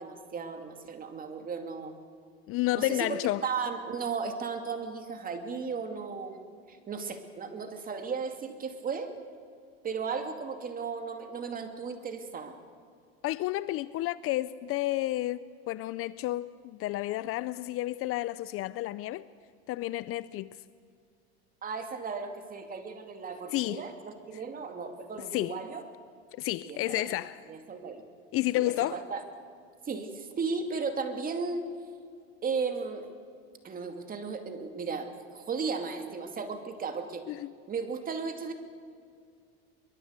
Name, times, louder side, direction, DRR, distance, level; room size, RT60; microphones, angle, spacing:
voice 1, 0.0-2.0 2.8-6.4 6.7-9.1 9.8-12.5 21.6-25.8 26.6-27.2 27.5-28.0 28.6-29.2 29.8-31.7 32.4-33.1 33.6-37.3 37.7-38.5, right 5 dB, 25° right, 2.5 m, -35 dB
voice 2, 2.5-3.5 13.2-19.3 19.7-20.5 23.5-23.8 25.3-25.6 26.3-27.4 28.3-29.0 37.3-37.5, left 16 dB, 45° left, 0.5 m, -31 dB
23.0 x 22.5 x 8.1 m
supercardioid pair, 130°, 33 cm